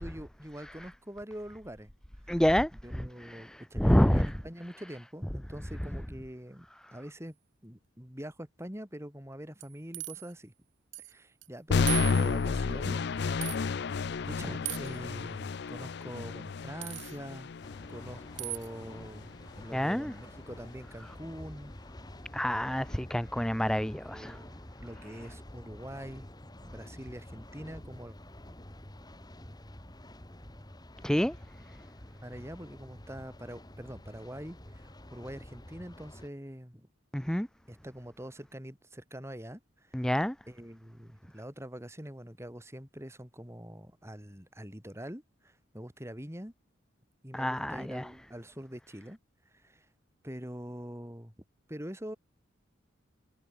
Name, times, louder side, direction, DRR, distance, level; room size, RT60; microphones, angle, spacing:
voice 1, 0.0-1.9 2.2-2.4 2.8-6.7 6.9-7.4 7.6-10.5 11.0-13.7 14.2-17.5 17.9-21.7 24.0-26.3 26.6-28.2 32.2-36.9 37.7-40.0 40.5-46.5 47.2-49.2 49.5-49.9 50.2-51.3 51.7-52.2, equal, 15° right, 4.4 m, -44 dB
voice 2, 2.3-4.3 19.7-20.1 22.3-24.4 31.0-31.4 37.1-37.5 39.9-40.3 47.3-48.1, equal, 5° left, 0.5 m, -28 dB
sound 1, 9.6-10.3 10.9-11.1 11.4-11.5 11.9-12.5 13.4-13.6 14.6-15.0 16.8-17.2 18.4-18.7, right 18 dB, 70° right, 3.1 m, -37 dB
sound 2, 11.7-19.7, left 5 dB, 55° left, 0.5 m, -32 dB
sound 3, 17.6-36.3, left 1 dB, 20° left, 2.2 m, -49 dB
head